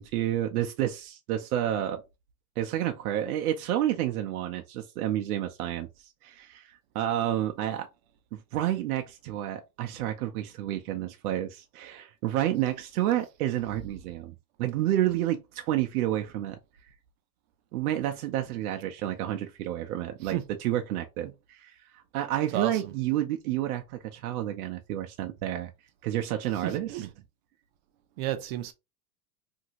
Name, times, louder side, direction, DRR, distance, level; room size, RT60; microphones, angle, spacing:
voice 1, 0.0-2.0 2.6-5.9 6.2-7.9 8.3-16.6 17.7-25.7 26.0-27.0, right 12 dB, 85° right, 0.6 m, -30 dB
voice 2, 28.2-28.7, right 12 dB, 45° right, 0.5 m, -30 dB
2.9 x 2.7 x 2.8 m
supercardioid pair, 155°, 43 cm